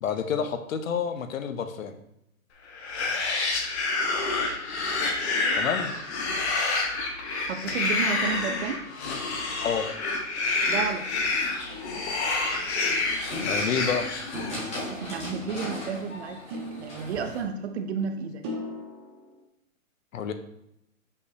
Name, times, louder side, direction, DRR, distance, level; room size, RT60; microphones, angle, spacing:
voice 1, 0.0-2.0 5.6-5.9 9.6-9.9 13.5-14.1 20.1-20.3, left 7 dB, 70° left, 9 dB, 0.8 m, -29 dB
sound 1, 2.7-14.7, left 3 dB, 50° left, 1.4 m, -28 dB
voice 2, 7.5-8.8 10.7-11.1 14.8-18.4, right 6 dB, 50° right, 7 dB, 0.8 m, -32 dB
sound 2, 10.7-17.4, left 1 dB, 15° left, 1.7 m, -39 dB
sound 3, 11.7-12.6 14.3-15.2 16.5-17.6 18.4-19.4, left 1 dB, 20° right, 0.6 m, -40 dB
6.4 x 5.5 x 2.7 m, 0.80 s
hypercardioid pair, 150°, 42 cm